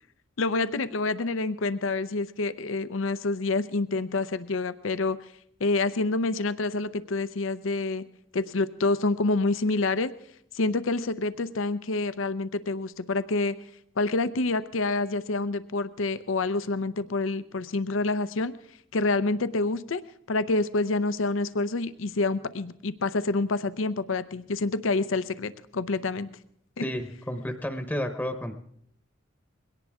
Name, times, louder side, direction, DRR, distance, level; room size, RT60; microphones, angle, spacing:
voice 1, 0.4-5.2 5.6-8.0 8.3-10.1 10.5-13.6 14.0-18.5 18.9-20.0 20.3-26.3 26.8-26.9, left 3 dB, 80° left, 13 dB, 0.7 m, -27 dB
voice 2, 26.8-28.5, equal, 10° left, 7 dB, 0.9 m, -31 dB
22.0 x 17.5 x 3.6 m, 0.69 s
head